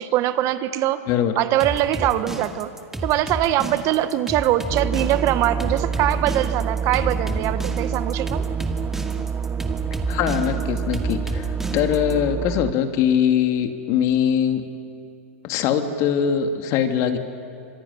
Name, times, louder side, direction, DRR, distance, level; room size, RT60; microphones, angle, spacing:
voice 1, 0.0-1.0 1.3-2.7 3.0-8.5, right 13 dB, 45° right, 11 dB, 1.3 m, -22 dB
sound 1, 1.6-12.1, right 1 dB, 5° right, 2.2 m, -32 dB
sound 2, 4.7-12.7, right 6 dB, 20° right, 0.6 m, -27 dB
voice 2, 10.1-11.4 11.7-14.6 15.4-17.2, left 9 dB, 45° left, 6 dB, 2.5 m, -22 dB
26.0 x 22.0 x 9.8 m, 2.5 s
hypercardioid pair, 120°, 8 cm